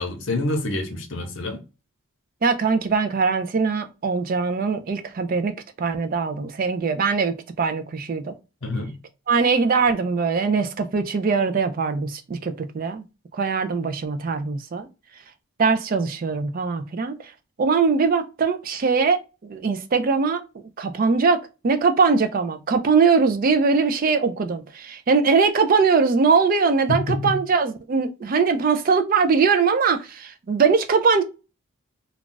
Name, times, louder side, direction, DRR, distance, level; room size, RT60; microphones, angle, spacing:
voice 1, 0.0-1.6 8.6-8.9 26.9-27.4, left 2 dB, 60° left, 0.7 m, -27 dB
voice 2, 2.4-8.3 9.3-13.0 13.3-14.9 15.6-17.2 17.6-20.4 20.8-31.2, right 5 dB, 40° right, 0.3 m, -21 dB
2.4 x 2.3 x 3.8 m
head